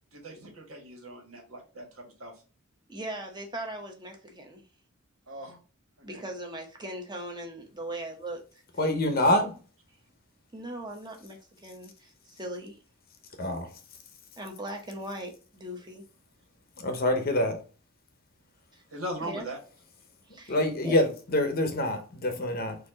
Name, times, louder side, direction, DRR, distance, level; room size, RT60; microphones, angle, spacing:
voice 1, 0.1-2.3 5.3-5.6 6.0-6.2 18.9-19.6, right 1 dB, 90° right, 1.7 m, -40 dB
voice 2, 2.9-4.6 6.0-8.6 10.5-12.8 14.4-16.0 18.7-18.8 19.2-19.5 20.3-20.6 20.8-21.0, right 1 dB, 20° right, 0.9 m, -39 dB
voice 3, 8.8-9.5 13.4-13.7 16.8-17.6 20.5-22.8, left 1 dB, 45° left, 0.7 m, -26 dB
4.3 x 2.7 x 3.8 m
head